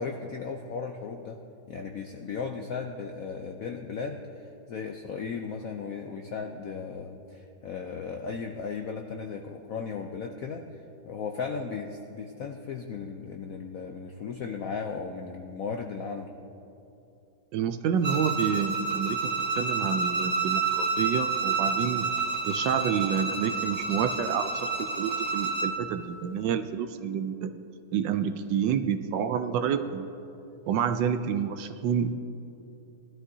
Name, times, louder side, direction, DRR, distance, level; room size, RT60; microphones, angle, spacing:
voice 1, 0.0-1.4 1.7-10.6 11.0-16.3, left 5 dB, 75° left, 4 dB, 0.7 m, -36 dB
voice 2, 17.5-19.2 19.6-22.1 22.4-27.5 27.9-30.1 30.7-32.2, right 8 dB, 75° right, 9 dB, 1.1 m, -28 dB
Bowed string instrument, 18.0-25.8, right 4 dB, 45° right, 0.8 m, -29 dB
19.5 x 12.5 x 2.7 m, 2.8 s
omnidirectional pair, 2.2 m